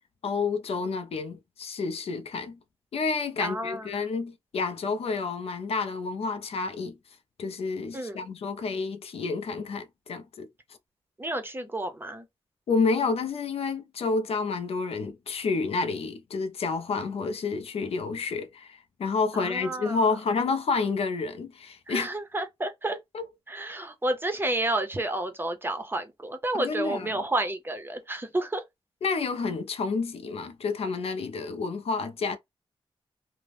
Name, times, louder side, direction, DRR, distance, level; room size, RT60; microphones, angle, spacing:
voice 1, 0.2-2.6 2.9-7.0 7.4-10.5 12.7-22.1 23.1-23.2 26.5-27.1 29.0-32.4, left 4 dB, 70° left, 0.4 m, -29 dB
voice 2, 3.4-3.9 7.9-8.2 11.2-12.3 19.3-20.0 21.9-23.0 23.5-28.6, right 1 dB, 20° right, 0.6 m, -30 dB
2.5 x 2.0 x 3.3 m
wide cardioid pair, 120°, 10 cm